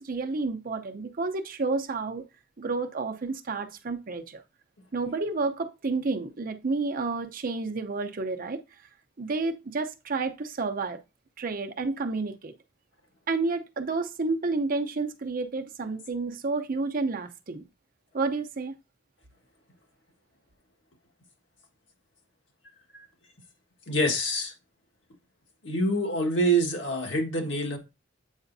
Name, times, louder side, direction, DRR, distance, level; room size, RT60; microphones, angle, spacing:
voice 1, 0.0-2.2 2.6-4.4 4.9-8.6 9.2-11.0 11.4-12.5 13.3-17.6 18.1-18.8, right 3 dB, 50° right, 0.7 m, -30 dB
voice 2, 23.9-24.5 25.6-27.8, right 1 dB, 70° left, 1.6 m, -26 dB
8.0 x 5.0 x 2.6 m
head